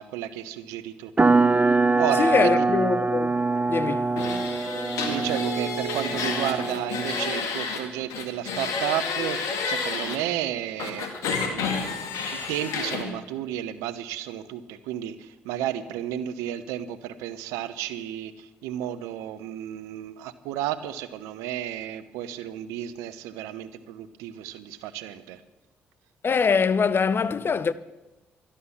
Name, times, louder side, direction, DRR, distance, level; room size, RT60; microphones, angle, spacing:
voice 1, 0.0-1.4 2.0-2.6 5.1-11.1 11.4-11.9 12.5-25.4, right 12 dB, 85° right, 0.8 m, -32 dB
sound 1, 1.2-7.4, right 3 dB, 25° right, 0.7 m, -24 dB
voice 2, 2.2-3.3 3.7-4.1 26.2-27.7, left 5 dB, 45° left, 0.8 m, -23 dB
sound 2, 4.2-7.8 8.1-10.2 10.8-13.0, left 5 dB, 80° left, 2.1 m, -30 dB
12.5 x 11.5 x 7.1 m
hypercardioid pair, 50°, 5 cm